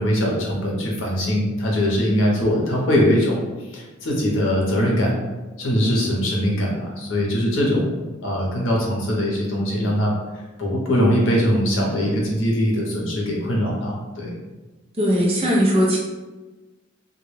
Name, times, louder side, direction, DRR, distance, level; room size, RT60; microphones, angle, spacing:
voice 1, 0.0-3.4 3.7-5.1 5.6-10.1 10.6-14.3, equal, 70° left, -3 dB, 0.7 m, -21 dB
voice 2, 15.0-16.0, equal, 30° right, -4 dB, 0.5 m, -19 dB
2.2 x 2.1 x 3.1 m, 1.2 s
head